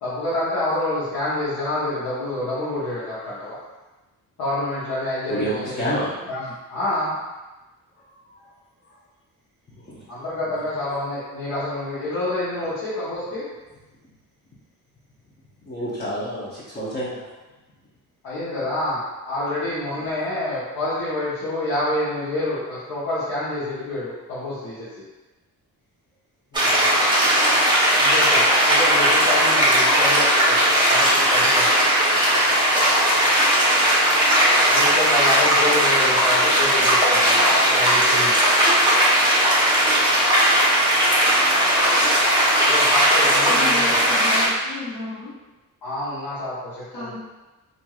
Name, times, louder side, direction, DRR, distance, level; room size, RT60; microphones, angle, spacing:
voice 1, 0.0-3.5 4.4-5.7 6.0-6.4 6.7-7.2 10.1-13.4 18.2-24.9 28.0-31.9 34.7-38.4 42.6-44.2 45.8-47.1, left 1 dB, 85° left, -11 dB, 0.9 m, -27 dB
voice 2, 5.3-6.1 8.0-8.5 9.9-10.0 10.5-10.6 15.6-17.3 19.9-20.0 26.5-27.4 30.7-31.5, equal, 25° left, -10 dB, 0.7 m, -32 dB
sound 1, 26.5-44.5, right 1 dB, 15° right, 0.8 m, -18 dB
voice 3, 43.4-45.3 46.9-47.1, left 2 dB, 65° left, -8 dB, 1.2 m, -33 dB
3.0 x 2.5 x 2.3 m, 1.1 s
cardioid pair, 115°, 36 cm